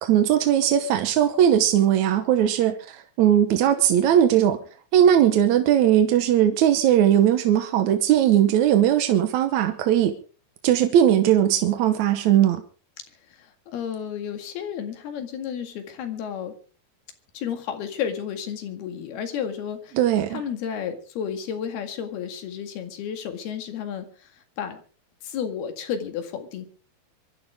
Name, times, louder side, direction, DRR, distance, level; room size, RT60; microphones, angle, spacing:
voice 1, 0.0-4.6 4.9-10.2 10.6-12.6 20.0-20.4, right 10 dB, 65° right, 8 dB, 1.9 m, -19 dB
voice 2, 13.3-16.5 17.3-20.0 20.3-24.1 24.6-24.8 25.2-26.7, left 8 dB, 80° left, 7 dB, 4.0 m, -32 dB
24.5 x 13.0 x 3.6 m, 0.39 s
omnidirectional pair, 4.5 m